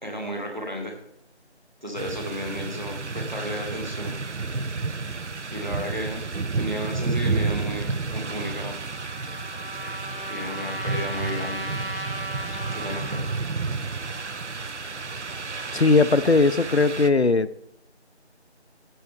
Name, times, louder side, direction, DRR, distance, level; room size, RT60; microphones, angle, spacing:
voice 1, 0.0-1.0 1.8-4.2 5.5-6.2 6.5-8.8 10.3-11.7 12.7-13.2, equal, 40° right, 1 dB, 2.1 m, -33 dB
sound 1, 1.9-17.1, right 3 dB, 90° right, 0.7 m, -31 dB
Trumpet, 8.6-13.3, right 1 dB, 55° right, 1.8 m, -36 dB
voice 2, 15.7-17.5, left 3 dB, 65° left, 14 dB, 0.5 m, -19 dB
13.5 x 7.7 x 3.4 m, 0.75 s
figure-of-eight pair, 180°, 34 cm